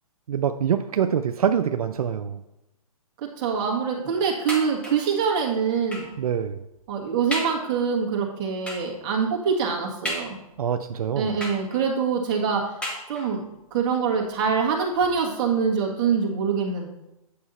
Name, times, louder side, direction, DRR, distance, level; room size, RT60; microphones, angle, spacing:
voice 1, 0.3-2.4 6.2-6.6 10.6-11.4, right 8 dB, 75° right, 8 dB, 0.5 m, -25 dB
voice 2, 3.4-6.1 6.9-10.4 11.2-12.6 13.1-13.4 13.7-16.9, right 6 dB, 30° right, -1 dB, 1.7 m, -24 dB
sound 1, 4.5-5.1 5.9-6.2 6.8-6.9 7.3-7.7 8.7-9.0 10.0-10.7 11.4-12.0 12.8-13.5 14.3-14.4 14.7-14.8, equal, 5° left, 1.3 m, -34 dB
8.6 x 5.5 x 4.2 m, 0.89 s
hypercardioid pair, 150°, 19 cm